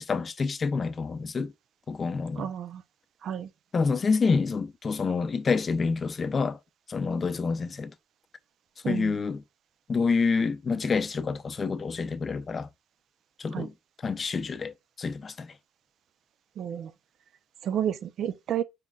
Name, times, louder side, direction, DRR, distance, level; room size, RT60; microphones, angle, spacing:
voice 1, 0.0-1.5 1.9-2.5 3.7-6.6 6.9-7.9 8.9-9.4 9.9-12.7 13.4-13.7 14.0-15.5, left 4 dB, 40° left, 0.5 m, -28 dB
voice 2, 2.4-2.8 3.2-3.5 8.8-9.2 13.5-13.7 16.6-16.9 17.6-18.6, right 9 dB, 70° right, 0.5 m, -31 dB
4.2 x 3.8 x 2.3 m
cardioid pair, 90°, 0 cm